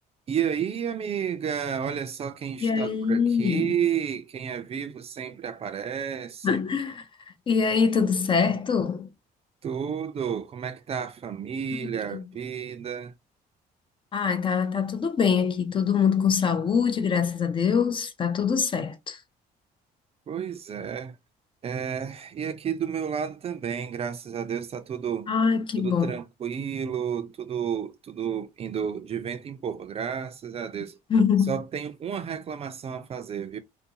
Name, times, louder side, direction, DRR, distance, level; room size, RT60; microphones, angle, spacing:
voice 1, 0.3-6.6 9.6-13.1 20.3-21.2 21.6-25.3 25.8-31.0 31.5-33.6, right 8 dB, 35° right, 0.4 m, -31 dB
voice 2, 2.6-3.7 6.4-7.1 7.5-9.1 12.1-12.2 14.1-19.2 25.3-26.1 31.1-31.5, left 6 dB, 30° left, 0.4 m, -24 dB
2.5 x 2.2 x 2.7 m
cardioid pair, 110°, 17 cm